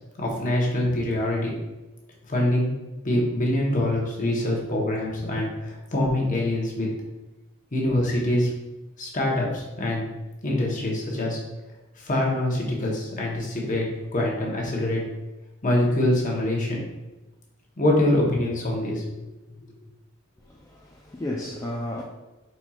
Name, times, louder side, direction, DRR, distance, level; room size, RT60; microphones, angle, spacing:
voice 1, 0.2-1.5 2.3-2.7 3.0-6.9 7.7-8.5 9.0-10.1 10.4-11.4 12.0-13.9 14.1-15.0 15.6-16.8 17.8-19.0, left 1 dB, 40° left, -2 dB, 1.0 m, -24 dB
voice 2, 20.4-22.0, left 1 dB, 15° left, -3 dB, 0.4 m, -33 dB
4.4 x 4.2 x 2.4 m, 1.0 s
head